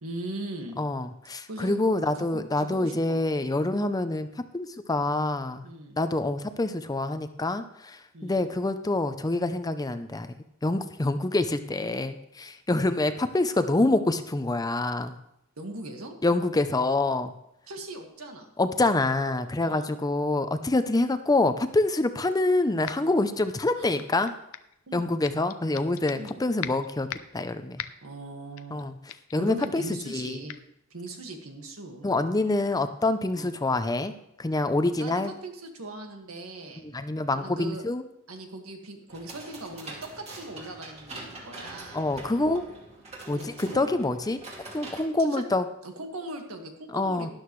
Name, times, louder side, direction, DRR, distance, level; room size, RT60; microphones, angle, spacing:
voice 1, 0.0-0.8 1.5-1.8 2.1-3.2 5.6-6.0 8.1-8.5 15.6-16.1 17.7-18.5 19.6-20.0 23.8-24.0 24.9-25.1 26.1-26.4 28.0-28.9 29.3-30.6 30.9-32.1 33.3-33.5 35.0-36.8 37.3-37.8 38.3-42.0 43.3-43.9 45.2-45.4 45.8-47.3, right 1 dB, 85° right, 3 dB, 1.8 m, -39 dB
voice 2, 0.8-4.3 4.5-5.6 6.0-10.3 10.6-15.2 16.2-17.3 18.6-24.3 24.9-27.1 27.3-27.8 28.7-28.9 29.3-30.4 32.0-35.3 36.8-38.0 41.9-42.6 43.3-44.4 44.7-45.7 46.9-47.3, left 2 dB, 20° left, 10 dB, 0.5 m, -26 dB
sound 1, 22.9-23.2 23.6-24.8 25.2-26.3 26.6-27.4 27.8-28.1 28.6-28.8 29.1-29.4 29.6-29.9 30.5-30.6, left 10 dB, 80° left, 0.6 m, -40 dB
sound 2, 39.1-45.0, right 2 dB, 30° right, 2.3 m, -44 dB
12.5 x 11.5 x 3.2 m, 0.79 s
head